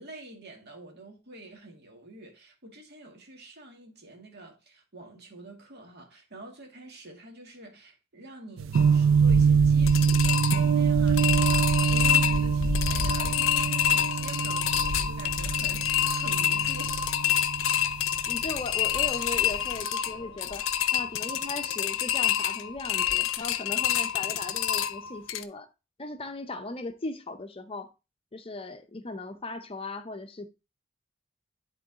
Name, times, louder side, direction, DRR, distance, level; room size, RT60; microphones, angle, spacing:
voice 1, 0.0-17.0, right 1 dB, 55° right, 2.0 m, -46 dB
sound 1, 8.6-18.6 18.9-19.7, right 6 dB, 70° right, 0.4 m, -25 dB
sound 2, 8.7-25.4, left 9 dB, 75° left, 0.6 m, -28 dB
voice 2, 18.3-20.7 20.9-25.7 26.0-27.9 28.3-30.5, left 2 dB, 30° left, 0.6 m, -37 dB
10.5 x 3.8 x 4.0 m
head